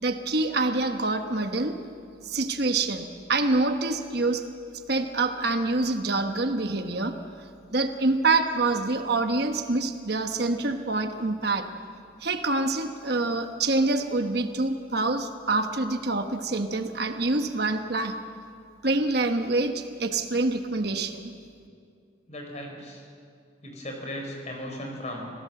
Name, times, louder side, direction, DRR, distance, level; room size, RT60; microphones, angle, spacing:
voice 1, 0.0-1.8 2.2-4.4 4.9-7.1 7.7-11.7 12.2-18.1 18.8-21.3, right 2 dB, 55° right, 6 dB, 1.2 m, -26 dB
voice 2, 22.3-23.0 23.6-25.3, left 1 dB, 35° left, 2 dB, 4.6 m, -37 dB
26.5 x 17.0 x 7.7 m, 2.3 s
head